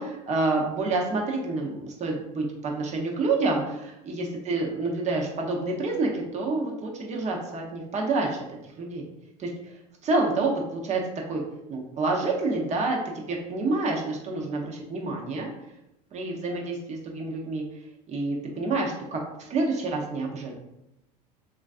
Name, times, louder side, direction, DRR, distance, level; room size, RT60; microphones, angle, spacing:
voice 1, 0.0-8.4 8.8-9.1 9.4-9.5 10.0-11.0 11.3-11.4 11.7-15.5 16.1-17.6 18.1-20.6, right 3 dB, 35° right, -1 dB, 0.7 m, -28 dB
3.1 x 2.4 x 2.4 m, 0.87 s
hypercardioid pair, 95°, 21 cm